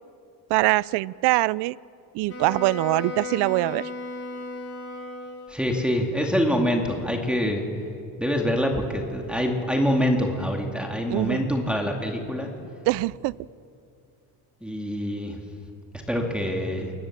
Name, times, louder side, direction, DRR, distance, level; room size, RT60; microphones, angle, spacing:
voice 1, 0.5-1.8 2.1-3.9 11.1-11.4 12.9-13.4, right 20 dB, 70° right, 22 dB, 0.5 m, -23 dB
Wind instrument woodwind instrument, 2.3-5.8, left 2 dB, 35° left, 3.9 m, -35 dB
voice 2, 5.5-7.6 8.2-12.5 14.6-15.4 16.1-16.9, equal, ahead, 1 dB, 2.3 m, -25 dB
24.0 x 19.5 x 7.4 m, 2.5 s
cardioid pair, 115°, 41 cm